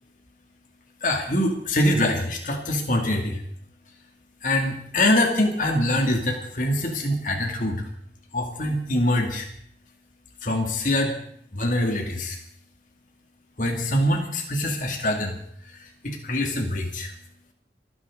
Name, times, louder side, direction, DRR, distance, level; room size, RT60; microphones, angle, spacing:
voice 1, 1.0-3.4 4.4-7.9 8.3-9.5 10.4-11.2 11.5-12.4 13.6-15.4 15.7-17.1, left 1 dB, 45° left, 2 dB, 2.5 m, -24 dB
29.0 x 10.0 x 3.9 m, 0.69 s
head